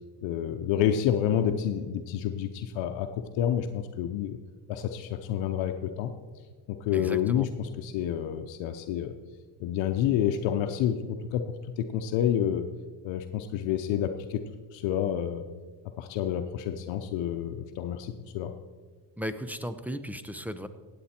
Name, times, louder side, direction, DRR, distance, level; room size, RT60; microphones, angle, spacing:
voice 1, 0.2-4.4 4.7-6.1 6.7-9.1 9.6-12.7 13.0-14.4 14.7-15.5 16.0-18.5, left 10 dB, 80° left, 6 dB, 0.9 m, -29 dB
voice 2, 6.9-7.5 19.2-20.7, equal, 5° right, 11 dB, 0.7 m, -35 dB
16.0 x 8.4 x 4.4 m, 1.5 s
cardioid pair, 100°, 45 cm